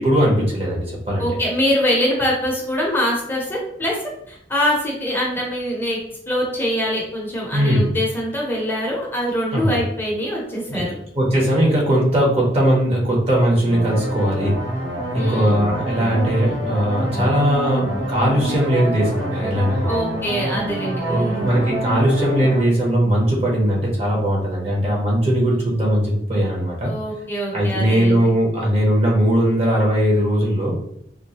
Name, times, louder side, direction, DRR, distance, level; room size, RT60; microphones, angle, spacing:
voice 1, 0.0-1.3 7.5-7.9 9.5-9.8 10.7-10.8 11.1-14.6 15.1-20.0 21.1-26.9 27.5-30.8, equal, 35° right, -3 dB, 0.9 m, -19 dB
voice 2, 1.2-6.0 6.3-11.0 15.2-15.6 19.8-21.6 26.8-28.4, equal, 10° left, -4 dB, 0.7 m, -24 dB
sound 1, 13.7-22.6, right 1 dB, 85° right, 1.2 m, -27 dB
3.7 x 2.2 x 2.8 m, 0.73 s
head